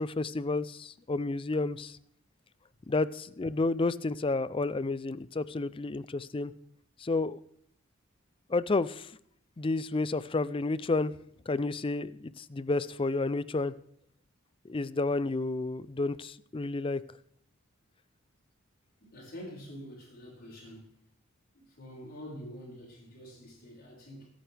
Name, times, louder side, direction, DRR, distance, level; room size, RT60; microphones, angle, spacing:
voice 1, 0.0-2.0 2.9-6.5 7.0-7.4 8.5-9.1 9.6-11.1 11.5-13.7 14.6-17.0, left 3 dB, 25° left, 17 dB, 0.4 m, -31 dB
voice 2, 19.0-21.0 21.5-24.3, equal, 45° left, -4 dB, 5.7 m, -46 dB
25.0 x 9.2 x 3.4 m, 0.67 s
head